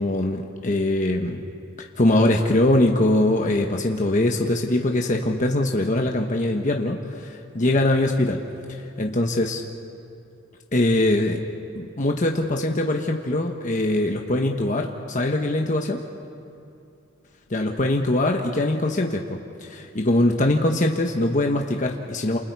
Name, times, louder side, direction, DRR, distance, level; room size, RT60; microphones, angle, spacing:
voice 1, 0.0-1.5 1.8-8.4 9.0-9.6 10.7-11.4 11.7-16.0 17.5-22.4, left 1 dB, 40° left, 2 dB, 1.2 m, -22 dB
29.0 x 28.0 x 4.8 m, 2.6 s
head